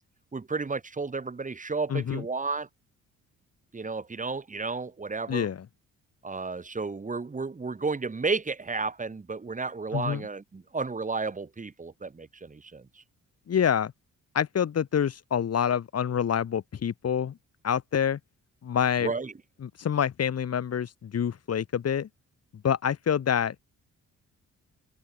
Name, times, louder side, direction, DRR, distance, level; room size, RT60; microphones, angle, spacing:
voice 1, 0.3-2.7 3.7-5.5 6.2-13.0 19.0-19.3, right 4 dB, 25° right, 3.5 m, -32 dB
voice 2, 1.9-2.2 5.3-5.6 9.9-10.2 13.5-13.9 14.3-17.4 17.6-18.2 18.6-19.1 19.6-22.1 22.6-23.7, left 8 dB, 55° left, 4.9 m, -27 dB
cardioid pair, 90°, 30 cm